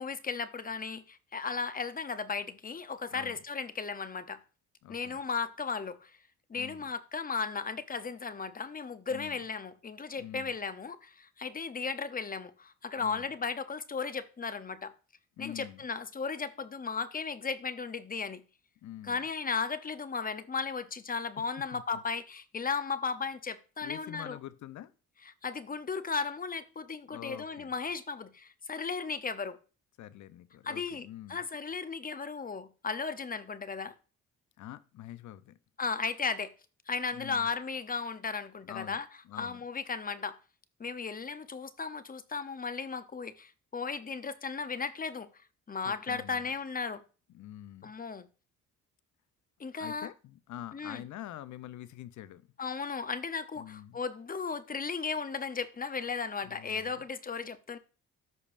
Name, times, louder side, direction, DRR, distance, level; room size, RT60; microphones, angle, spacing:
voice 1, 0.0-4.4 4.9-6.2 6.5-14.9 15.4-18.4 19.1-24.4 25.4-29.6 30.6-33.9 35.8-36.5 36.9-39.1 39.4-40.4 40.8-45.3 45.7-47.0 47.8-48.3 49.6-50.1 50.7-51.0 52.6-57.8, left 5 dB, 30° left, 0.8 m, -35 dB
voice 2, 3.1-3.4 4.8-5.2 6.5-6.9 9.1-9.4 10.2-10.5 13.0-13.3 15.4-15.8 18.8-19.3 21.7-22.0 23.8-24.9 27.1-27.7 30.0-31.4 34.6-35.6 37.1-37.5 38.6-39.6 45.8-46.5 47.3-47.9 49.8-52.5 53.6-54.0 56.4-57.0, left 12 dB, 70° left, 0.7 m, -46 dB
13.5 x 5.3 x 2.6 m
cardioid pair, 90°, 30 cm